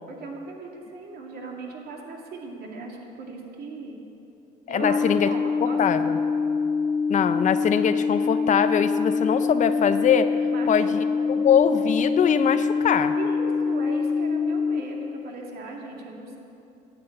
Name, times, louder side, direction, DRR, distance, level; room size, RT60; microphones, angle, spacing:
voice 1, 0.1-4.0 4.7-6.2 10.5-10.9 11.2-11.5 13.1-16.4, right 3 dB, 65° right, 0 dB, 2.3 m, -38 dB
voice 2, 4.7-5.3 5.6-6.2 7.1-10.3 10.7-13.1, left 8 dB, 45° left, 10 dB, 0.6 m, -23 dB
sound 1, 4.8-14.8, left 5 dB, 15° left, 0.4 m, -25 dB
11.5 x 7.8 x 9.1 m, 2.8 s
cardioid pair, 110°, 17 cm